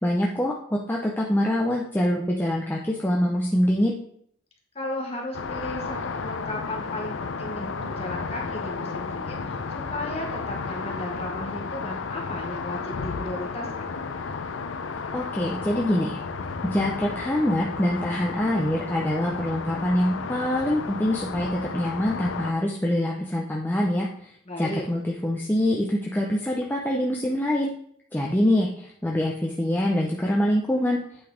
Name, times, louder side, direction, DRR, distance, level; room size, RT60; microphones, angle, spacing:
voice 1, 0.0-4.0 15.1-16.2 16.6-21.5 21.7-24.3 24.6-27.7 28.1-31.0, left 1 dB, 10° left, -2 dB, 0.6 m, -24 dB
voice 2, 4.7-13.9 24.4-24.9, left 1 dB, 30° left, 1 dB, 1.6 m, -35 dB
sound 1, 5.3-22.5, left 4 dB, 80° left, 0.6 m, -33 dB
8.6 x 4.0 x 5.0 m, 0.66 s
head